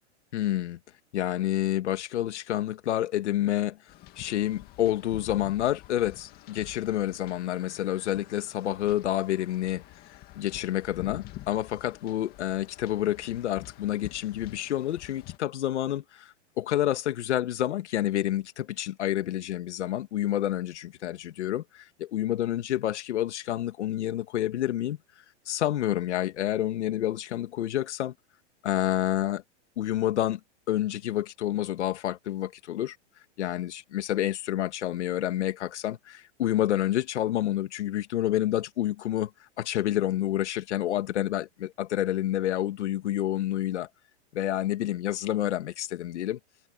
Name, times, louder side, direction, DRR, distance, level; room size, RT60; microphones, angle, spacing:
voice 1, 0.3-0.8 1.1-3.8 4.2-9.8 10.4-25.0 25.5-28.1 28.6-29.4 29.8-30.4 30.7-33.0 33.4-39.3 39.6-43.9 44.3-46.4, left 13 dB, 80° left, 2.5 m, -28 dB
sound 1, 3.9-15.4, left 16 dB, 25° left, 2.0 m, -47 dB
supercardioid pair, 160°, 35 cm